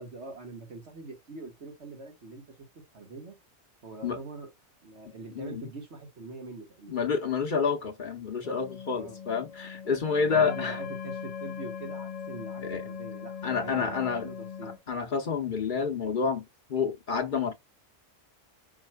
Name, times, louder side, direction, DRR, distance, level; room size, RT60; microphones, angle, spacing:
voice 1, 0.0-2.4 2.9-3.4 3.8-4.5 4.8-7.0 8.9-9.2 10.2-14.8, right 3 dB, 75° right, 1.9 m, -43 dB
voice 2, 6.9-10.8 12.6-12.8 13.4-14.3 14.9-16.4 16.7-17.5, left 5 dB, 50° left, 0.9 m, -29 dB
sound 1, 8.4-14.8, left 7 dB, 70° left, 0.3 m, -40 dB
5.6 x 4.2 x 2.2 m
omnidirectional pair, 1.2 m